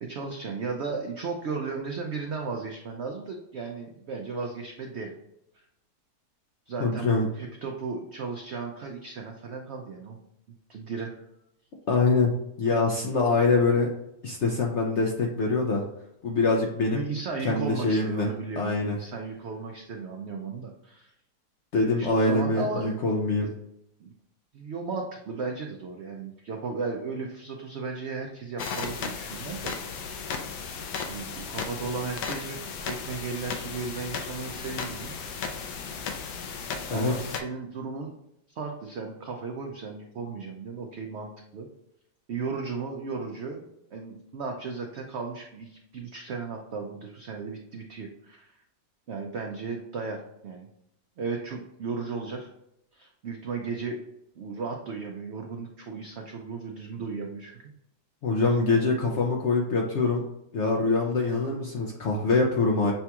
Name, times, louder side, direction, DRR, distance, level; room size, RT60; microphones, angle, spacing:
voice 1, 0.0-5.1 5.5-5.6 6.7-10.2 10.7-11.1 16.9-21.1 21.9-23.0 23.4-23.5 24.0-24.1 24.5-30.3 31.0-35.1 36.9-38.1 38.6-41.7 42.3-43.7 43.9-48.5 49.1-50.7 51.2-52.5 52.9-54.0 54.4-57.7, right 4 dB, 85° right, 2 dB, 0.6 m, -35 dB
voice 2, 6.8-7.3 11.9-13.9 14.2-15.8 16.2-17.0 17.4-18.3 18.6-19.0 21.7-23.5 36.9-37.1 58.2-60.3 60.5-62.9, left 3 dB, 70° left, 0 dB, 0.6 m, -24 dB
sound 1, 28.6-37.4, left 5 dB, 85° left, 1.2 m, -35 dB
6.7 x 2.3 x 2.8 m, 0.81 s
omnidirectional pair, 1.8 m